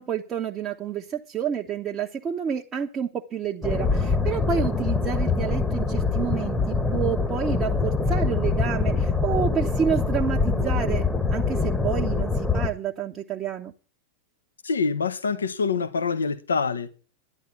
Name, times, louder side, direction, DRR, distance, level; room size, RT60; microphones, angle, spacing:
voice 1, 0.0-13.7, right 7 dB, 25° right, 1.1 m, -29 dB
sound 1, 3.6-12.7, left 4 dB, 10° left, 1.3 m, -24 dB
voice 2, 14.6-16.9, left 5 dB, 70° left, 1.2 m, -25 dB
12.0 x 10.5 x 6.0 m
figure-of-eight pair, 90°, 0 cm